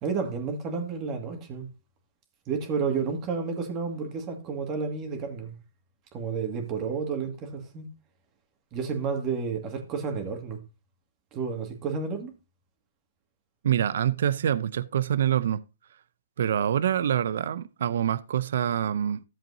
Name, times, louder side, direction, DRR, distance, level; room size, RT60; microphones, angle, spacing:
voice 1, 0.0-1.7 2.5-5.6 6.1-7.9 8.7-10.6 11.3-12.3, right 5 dB, 30° right, 2.0 m, -31 dB
voice 2, 13.6-15.6 16.4-19.2, right 9 dB, 65° right, 0.5 m, -26 dB
14.0 x 7.4 x 2.7 m
hypercardioid pair, 135°, 0 cm